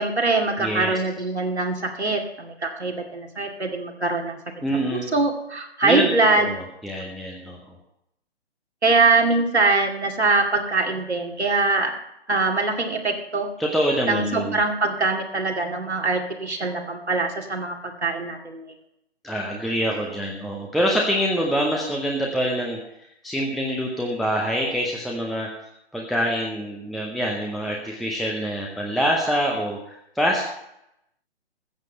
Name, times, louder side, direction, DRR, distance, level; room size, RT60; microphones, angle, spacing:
voice 1, 0.0-4.4 4.9-6.5 8.8-11.9 12.3-13.5 14.1-18.6, right 3 dB, 85° right, 1 dB, 2.3 m, -23 dB
voice 2, 0.6-0.9 4.6-5.1 5.8-6.1 6.5-7.6 13.6-14.6 19.2-22.8 23.2-25.5 25.9-30.5, equal, ahead, -1 dB, 0.6 m, -25 dB
14.0 x 7.7 x 7.5 m, 0.80 s
figure-of-eight pair, 130°, 33 cm